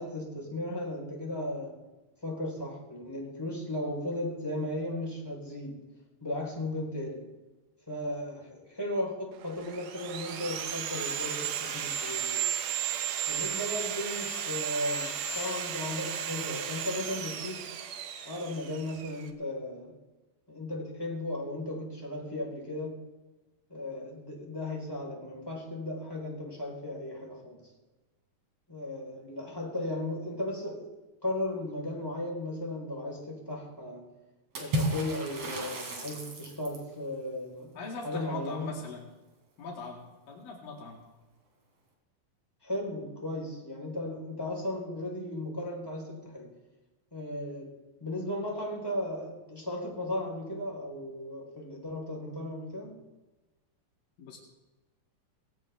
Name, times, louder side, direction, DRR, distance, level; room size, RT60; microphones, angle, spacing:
voice 1, 0.0-1.8 2.2-5.9 6.2-7.3 7.9-12.5 13.3-17.7 18.2-19.9 20.5-23.0 23.7-27.6 28.7-30.9 31.2-34.1 34.6-37.7 38.0-38.7 42.6-46.5 47.1-53.0, left 1 dB, 5° left, -1 dB, 4.0 m, -36 dB
Sawing, 9.4-19.3, right 8 dB, 75° right, 2.7 m, -34 dB
Water / Splash splatter, 34.6-36.9, right 1 dB, 50° right, 3.9 m, -33 dB
voice 2, 37.7-39.1 39.6-41.0 54.2-54.4, left 4 dB, 85° left, -1 dB, 4.1 m, -41 dB
19.0 x 17.5 x 3.5 m, 1.1 s
omnidirectional pair, 3.9 m